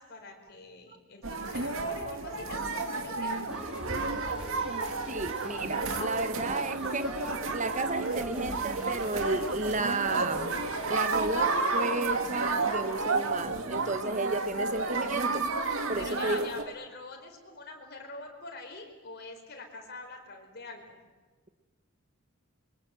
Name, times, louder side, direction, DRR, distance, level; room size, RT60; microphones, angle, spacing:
voice 1, 0.0-3.4 16.0-20.9, left 3 dB, 50° left, 2 dB, 4.7 m, -44 dB
sound 1, 1.2-16.6, right 3 dB, 75° right, 2.3 m, -31 dB
sound 2, 3.5-10.9, left 1 dB, 5° right, 2.4 m, -45 dB
sound 3, 3.5-5.5 5.9-6.8 7.2-8.0 8.4-8.5 9.3-9.4 9.6-9.9 10.4-10.6 11.1-11.2, right 1 dB, 55° right, 3.1 m, -48 dB
voice 2, 5.1-10.6 10.9-15.5 15.9-16.6, right 3 dB, 35° right, 11 dB, 1.1 m, -33 dB
27.5 x 23.5 x 7.8 m, 1.3 s
head